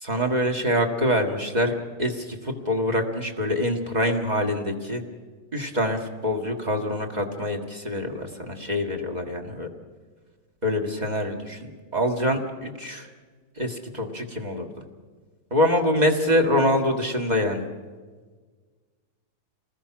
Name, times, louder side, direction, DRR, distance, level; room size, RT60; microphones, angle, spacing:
voice 1, 0.0-5.0 5.5-9.7 10.6-13.1 13.6-14.7 15.5-17.6, left 1 dB, 25° right, 3 dB, 2.1 m, -25 dB
29.0 x 20.0 x 6.2 m, 1.5 s
omnidirectional pair, 1.8 m